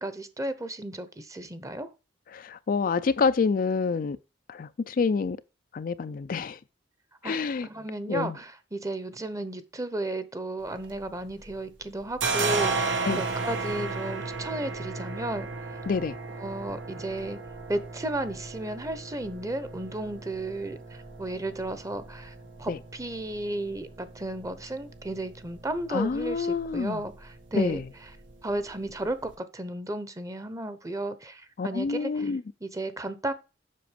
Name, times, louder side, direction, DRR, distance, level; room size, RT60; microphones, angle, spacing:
voice 1, 0.0-1.9 7.2-7.4 7.6-15.5 16.4-17.4 17.7-27.8 28.4-32.3 32.6-33.3, right 1 dB, 15° right, 0.9 m, -34 dB
voice 2, 2.3-4.2 4.5-5.4 5.7-6.6 7.2-7.7 8.1-8.4 13.0-13.2 15.9-16.2 22.7-22.8 25.9-27.0 27.5-27.9 31.6-32.4, left 4 dB, 45° left, 0.4 m, -27 dB
sound 1, 10.6-11.6 11.8-29.3, right 4 dB, 85° right, 1.7 m, -35 dB
7.7 x 6.0 x 5.0 m
head